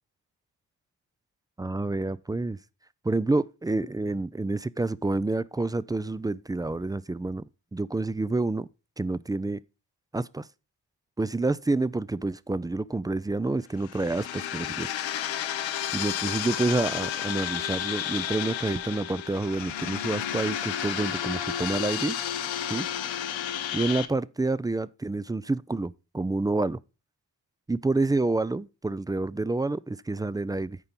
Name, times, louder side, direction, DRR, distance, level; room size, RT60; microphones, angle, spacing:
voice 1, 1.6-2.6 3.0-7.4 7.7-8.7 9.0-9.6 10.1-10.5 11.2-14.9 15.9-22.2 22.7-22.9 23.7-26.8 27.7-30.8, right 2 dB, 10° right, 0.3 m, -28 dB
sound 1, 13.8-24.1, left 10 dB, 90° left, 0.8 m, -32 dB
9.8 x 4.4 x 5.2 m
supercardioid pair, 50°, 45 cm